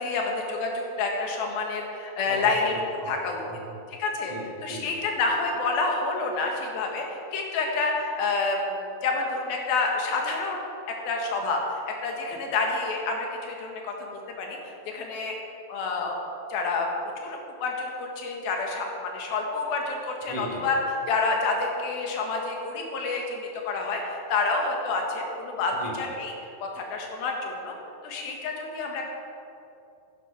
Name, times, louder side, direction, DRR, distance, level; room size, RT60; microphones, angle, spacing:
voice 1, 0.0-2.7 3.1-3.4 4.0-4.3 4.6-10.7 11.1-14.6 14.9-15.4 15.7-16.2 16.5-16.9 17.2-20.8 21.1-26.3 26.6-27.8 28.0-29.0, left 3 dB, 80° left, 1 dB, 3.4 m, -28 dB
voice 2, 2.2-3.2 3.4-3.8 4.3-4.9 20.3-20.7 25.8-25.9, right 1 dB, 25° right, -3 dB, 0.8 m, -38 dB
11.5 x 11.0 x 6.0 m, 2.8 s
omnidirectional pair, 4.2 m